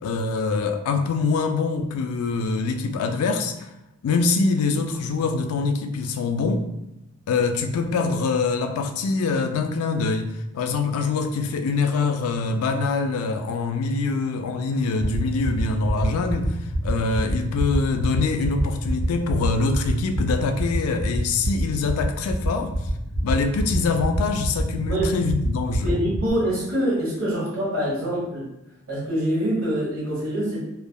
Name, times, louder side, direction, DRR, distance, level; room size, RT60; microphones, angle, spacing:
voice 1, 0.0-3.7 4.0-6.7 7.3-10.3 10.5-22.7 23.2-25.9, left 4 dB, 85° left, 6 dB, 0.3 m, -24 dB
sound 1, 15.0-26.3, right 1 dB, 25° left, 1.1 m, -26 dB
voice 2, 25.8-28.5 28.9-30.6, right 1 dB, 75° right, -7 dB, 1.3 m, -25 dB
3.3 x 2.1 x 2.2 m, 0.87 s
head